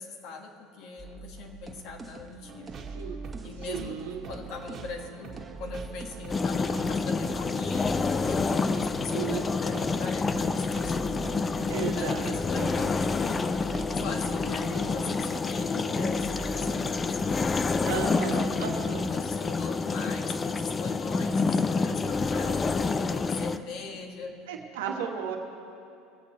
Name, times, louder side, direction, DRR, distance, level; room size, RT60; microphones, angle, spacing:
voice 1, 0.0-2.9 3.4-4.0 4.3-11.2 11.9-13.5 13.9-17.3 17.8-24.4, left 4 dB, 60° left, 2 dB, 1.6 m, -41 dB
sound 1, 1.0-5.0 5.3-7.7 8.0-15.7 16.0-18.4 18.6-19.0, right 3 dB, 20° right, 1.5 m, -44 dB
sound 2, 2.4-15.3, right 5 dB, 40° right, 1.9 m, -44 dB
voice 2, 3.4-4.2 9.1-9.4 9.7-9.9 11.7-12.7 17.8-19.0 24.5-25.4, right 7 dB, 75° right, 1 dB, 1.7 m, -34 dB
sound 3, 6.3-23.6, left 4 dB, 25° left, 0.6 m, -28 dB
22.5 x 8.2 x 4.4 m, 2.6 s
hypercardioid pair, 75°, 0 cm